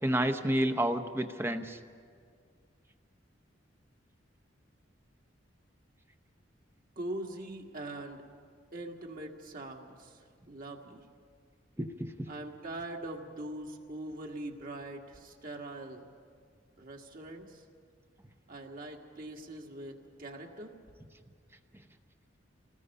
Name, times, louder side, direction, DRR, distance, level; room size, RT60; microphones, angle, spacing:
voice 1, 0.0-1.8 11.8-12.3, right 1 dB, 15° right, 8 dB, 0.8 m, -30 dB
voice 2, 7.0-8.2 8.7-11.0 12.3-16.0 16.8-17.6 18.5-20.7, right 1 dB, 50° right, 1 dB, 1.9 m, -42 dB
28.0 x 19.5 x 5.5 m, 2.1 s
head